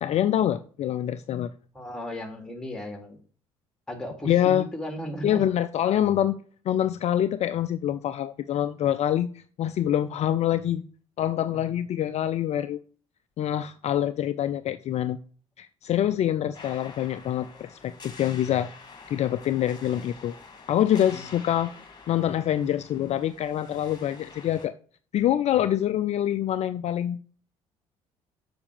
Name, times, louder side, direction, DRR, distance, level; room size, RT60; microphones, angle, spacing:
voice 1, 0.0-1.5 4.2-4.7 5.2-6.4 6.7-10.8 11.2-12.8 13.4-15.2 15.6-18.7 19.1-20.3 20.7-21.7 22.1-24.7 25.1-27.2, left 11 dB, 50° left, 0.5 m, -25 dB
voice 2, 1.7-3.2 3.9-5.4 11.5-11.7 21.1-21.3, equal, 5° left, 3.0 m, -36 dB
sound 1, 16.5-24.7, left 4 dB, 30° left, 2.0 m, -47 dB
7.1 x 6.1 x 6.7 m
figure-of-eight pair, 50°, 15 cm